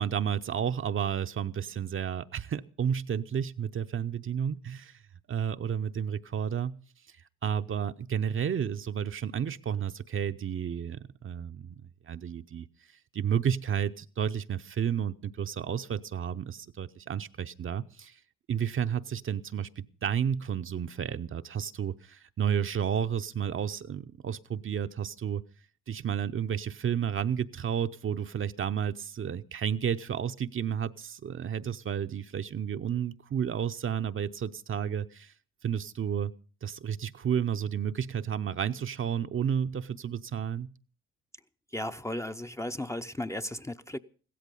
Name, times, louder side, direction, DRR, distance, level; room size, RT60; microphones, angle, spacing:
voice 1, 0.0-5.0 5.3-6.8 7.4-12.7 13.1-18.2 18.5-25.4 25.9-35.3 35.6-36.3 36.6-40.7, right 8 dB, 40° right, 0.7 m, -31 dB
voice 2, 41.7-44.0, left 1 dB, 10° left, 0.6 m, -35 dB
16.0 x 13.5 x 5.4 m
supercardioid pair, 65°, 33 cm